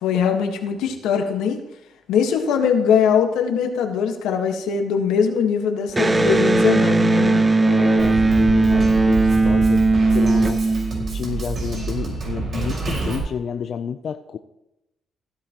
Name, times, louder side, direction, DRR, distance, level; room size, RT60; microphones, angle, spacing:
voice 1, 0.0-1.6 2.1-7.5, left 7 dB, 90° left, 5 dB, 1.5 m, -21 dB
Electric guitar, 5.9-11.4, right 3 dB, 20° right, 0.7 m, -18 dB
voice 2, 7.6-10.6 11.1-14.4, left 7 dB, 60° left, 8 dB, 0.5 m, -30 dB
Drum kit, 8.0-13.2, right 4 dB, 50° right, 5.0 m, -27 dB
15.5 x 11.5 x 3.0 m, 0.90 s
cardioid pair, 90°, 0 cm